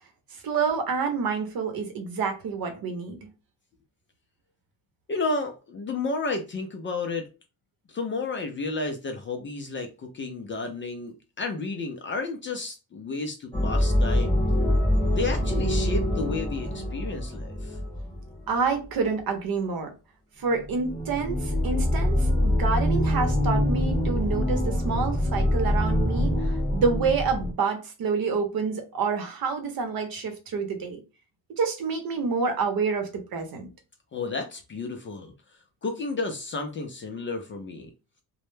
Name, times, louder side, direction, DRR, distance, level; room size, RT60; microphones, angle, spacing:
voice 1, 0.4-3.3 18.5-19.9 20.4-31.0 31.5-33.7, right 5 dB, 55° right, 0.8 m, -28 dB
voice 2, 5.1-7.2 7.9-14.4 15.1-17.8 34.1-35.3 35.8-37.9, left 3 dB, 30° left, 0.4 m, -32 dB
sound 1, 13.5-18.4 20.5-27.5, left 1 dB, 10° left, 0.7 m, -25 dB
2.1 x 2.1 x 3.1 m
cardioid pair, 105°, 42 cm